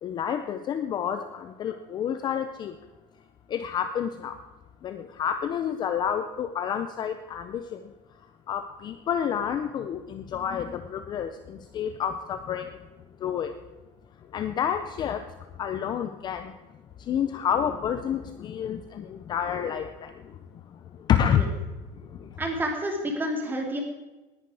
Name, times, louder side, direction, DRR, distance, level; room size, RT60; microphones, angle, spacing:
voice 1, 0.0-2.8 3.5-4.4 4.8-7.9 8.5-12.8 13.2-13.5 14.3-15.3 15.6-16.5 17.0-20.4 20.7-21.4 22.0-22.4, left 8 dB, 25° left, 9 dB, 0.6 m, -29 dB
voice 2, 22.4-23.8, right 1 dB, 10° right, 1 dB, 2.4 m, -29 dB
19.0 x 10.5 x 4.8 m, 1.2 s
cardioid pair, 175°, 17 cm